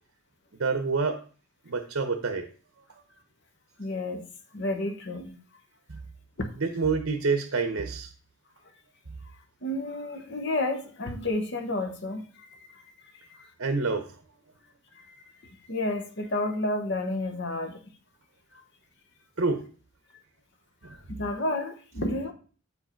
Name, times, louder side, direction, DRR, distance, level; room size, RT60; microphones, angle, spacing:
voice 1, 0.6-1.2 1.7-2.5 5.9-6.0 6.6-8.1 13.6-14.1 19.4-19.6 20.8-21.0, right 4 dB, 60° right, 7 dB, 0.7 m, -27 dB
voice 2, 3.8-5.4 6.4-6.5 9.6-12.8 13.1-13.5 14.9-17.8 18.5-18.6 20.8-22.3, left 2 dB, 50° left, 6 dB, 1.0 m, -31 dB
8.3 x 4.9 x 4.4 m, 0.39 s
head